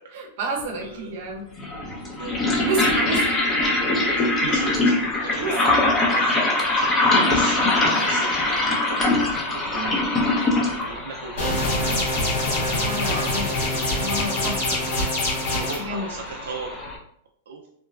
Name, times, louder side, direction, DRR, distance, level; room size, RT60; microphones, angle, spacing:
voice 1, 0.1-1.5 2.6-3.4 5.4-5.6 6.9-7.0 9.7-10.0 12.7-13.5 14.0-15.1 15.5-16.1, right 2 dB, 60° right, 2 dB, 0.7 m, -30 dB
sound 1, 0.6-0.7 1.6-17.0, left 2 dB, 25° left, 0.6 m, -24 dB
voice 2, 0.8-1.1 1.8-3.3 4.2-9.2 9.5-12.4 12.8-13.6 14.0-14.5 15.5-16.8 17.5-17.7, right 4 dB, 85° right, 0 dB, 0.3 m, -37 dB
sound 2, 5.3-5.4 6.0-6.1 6.3-6.4 6.7-8.8 9.4-9.9 10.2-10.3 10.5-10.6 11.1-11.5 11.8-12.1 12.5-13.7, left 1 dB, 45° left, 1.1 m, -35 dB
sound 3, 11.4-15.8, left 1 dB, 70° left, 1.5 m, -24 dB
2.9 x 2.2 x 2.3 m, 0.67 s
hypercardioid pair, 135°, 0 cm